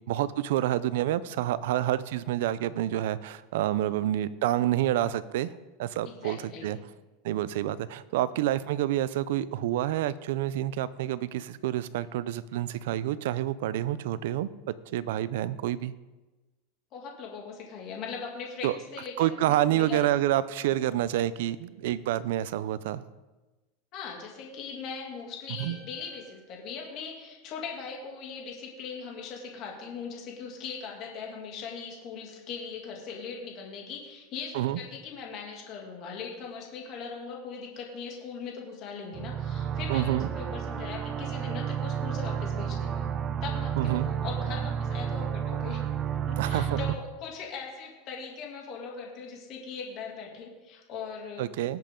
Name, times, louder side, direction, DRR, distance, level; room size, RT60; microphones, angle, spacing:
voice 1, 0.1-5.5 5.8-6.8 7.2-14.5 14.9-15.9 18.6-18.8 19.2-23.0 25.6-25.8 34.5-34.8 39.9-40.3 43.8-44.1 46.4-46.8 51.4-51.8, right 13 dB, 75° right, 17 dB, 0.5 m, -28 dB
voice 2, 6.0-6.8 16.9-20.0 23.9-43.1 43.4-45.8 46.3-51.5, left 5 dB, 45° left, -1 dB, 2.6 m, -40 dB
sound 1, 25.6-27.8, right 3 dB, 15° right, 2.9 m, -58 dB
sound 2, 39.1-47.0, right 8 dB, 30° right, 0.5 m, -31 dB
19.0 x 7.6 x 3.8 m, 1.2 s
supercardioid pair, 145°, 0 cm